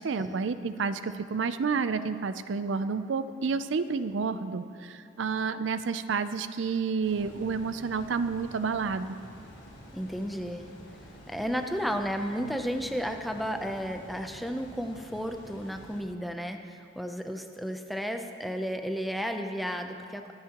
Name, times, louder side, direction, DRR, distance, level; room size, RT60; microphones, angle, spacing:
voice 1, 0.0-9.2, right 5 dB, 75° right, 12 dB, 0.4 m, -30 dB
sound 1, 7.0-16.0, equal, 65° left, 3.5 m, -49 dB
voice 2, 9.9-10.7 11.3-20.3, equal, ahead, 4 dB, 0.6 m, -33 dB
25.0 x 9.5 x 3.0 m, 2.4 s
head